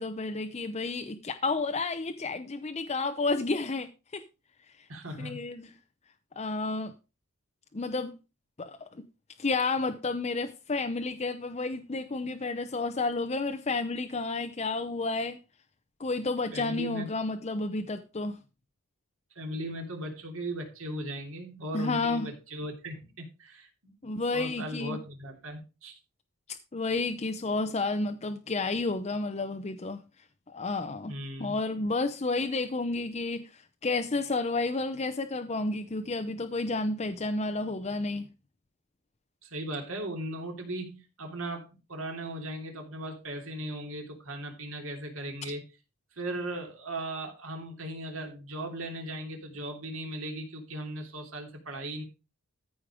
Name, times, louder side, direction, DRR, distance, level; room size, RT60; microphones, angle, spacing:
voice 1, 0.0-4.2 5.2-5.7 6.4-6.9 7.7-8.1 8.6-8.8 9.4-15.4 16.0-18.4 21.7-22.3 24.0-25.0 26.7-30.0 30.5-31.1 31.4-38.3, left 3 dB, 30° left, 0.6 m, -31 dB
voice 2, 4.9-5.4 16.5-17.1 19.3-23.7 24.3-25.9 31.1-31.6 39.4-45.6 46.2-52.0, right 1 dB, 60° right, 3.2 m, -37 dB
14.0 x 5.2 x 4.9 m
head